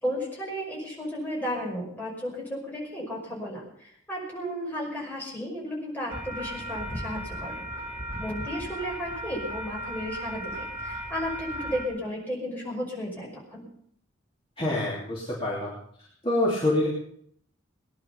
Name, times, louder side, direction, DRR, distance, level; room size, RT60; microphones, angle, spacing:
voice 1, 0.0-7.6 8.2-13.7, equal, 10° left, -4 dB, 5.6 m, -34 dB
sound 1, 6.1-11.8, right 1 dB, 20° right, 2.4 m, -36 dB
voice 2, 14.6-15.7 16.2-16.9, left 1 dB, 25° left, -6 dB, 3.0 m, -26 dB
20.0 x 10.5 x 5.8 m, 0.69 s
head